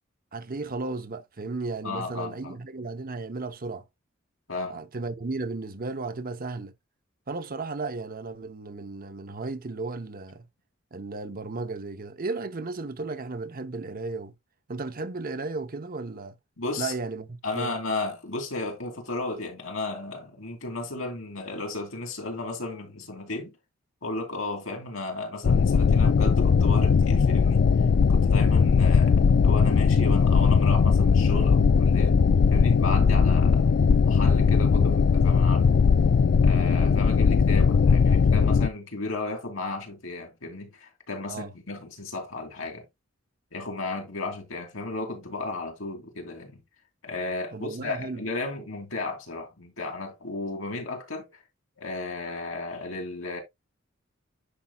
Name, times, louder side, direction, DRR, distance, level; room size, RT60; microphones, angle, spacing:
voice 1, 0.3-3.8 4.7-6.7 7.3-10.5 10.9-14.3 14.7-16.4 16.8-17.7 41.3-41.5 47.5-48.2, right 3 dB, 45° right, 0.8 m, -34 dB
voice 2, 1.8-2.6 4.5-4.8 16.6-16.9 17.4-23.6 24.0-27.6 28.1-32.2 32.5-33.8 34.0-35.8 36.4-42.8 43.5-46.6 47.0-51.3 51.8-53.4, left 3 dB, 75° left, 2.8 m, -34 dB
sound 1, 25.4-38.7, left 5 dB, 55° left, 0.3 m, -19 dB
10.0 x 5.4 x 2.3 m
head